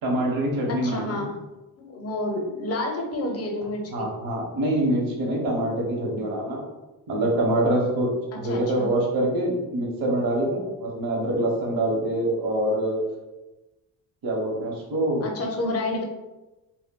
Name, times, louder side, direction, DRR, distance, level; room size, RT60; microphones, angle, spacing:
voice 1, 0.0-1.2 3.9-6.6 7.1-8.1 8.4-13.0 14.2-15.2, right 1 dB, 60° right, -2 dB, 0.9 m, -25 dB
voice 2, 0.7-1.3 1.8-4.1 8.3-8.9 15.2-16.0, left 1 dB, 40° left, 2 dB, 0.6 m, -29 dB
2.2 x 2.1 x 3.5 m, 1.1 s
cardioid pair, 105°, 40 cm